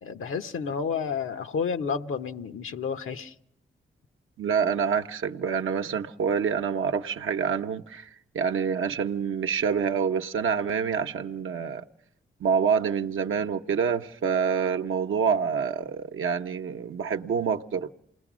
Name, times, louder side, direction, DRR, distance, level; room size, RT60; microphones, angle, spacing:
voice 1, 0.0-3.3, left 6 dB, 85° left, 1.0 m, -30 dB
voice 2, 4.4-8.1 8.3-11.9 12.4-17.9, right 6 dB, 75° right, 0.8 m, -27 dB
28.0 x 20.0 x 6.2 m
cardioid pair, 65°, 21 cm